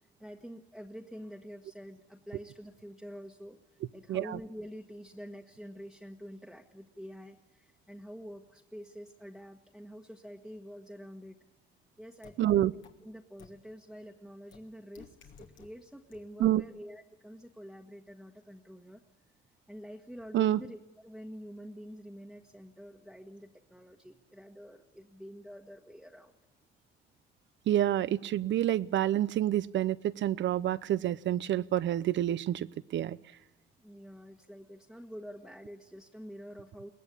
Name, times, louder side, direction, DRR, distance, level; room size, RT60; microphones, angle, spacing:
voice 1, 0.2-3.6 3.9-11.4 12.0-19.0 19.7-26.4 33.8-36.9, equal, ahead, 0 dB, 1.5 m, -47 dB
voice 2, 4.1-4.4 12.4-12.7 16.4-16.6 20.3-20.6 27.7-33.2, right 12 dB, 70° right, 18 dB, 0.7 m, -28 dB
sound 1, 12.2-12.3 12.8-12.9 13.4-13.5 14.5-14.6 15.0-15.7 16.1-16.2, left 7 dB, 75° left, 2.6 m, -52 dB
22.0 x 17.5 x 8.5 m, 1.0 s
cardioid pair, 90°, 20 cm